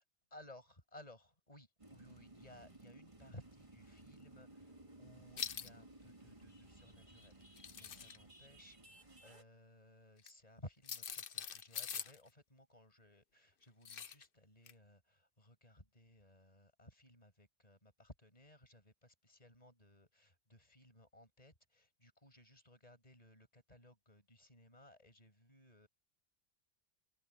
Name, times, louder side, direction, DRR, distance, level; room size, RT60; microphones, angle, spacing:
voice 1, 0.3-25.9, left 1 dB, 35° left, 6.9 m, -60 dB
sound 1, 1.8-9.4, right 2 dB, 25° right, 2.4 m, -59 dB
sound 2, 5.4-5.7 7.4-8.2 10.2-10.3 10.8-12.2 13.9-14.2 14.7-14.8, left 7 dB, 55° left, 1.0 m, -44 dB
omnidirectional pair, 1.2 m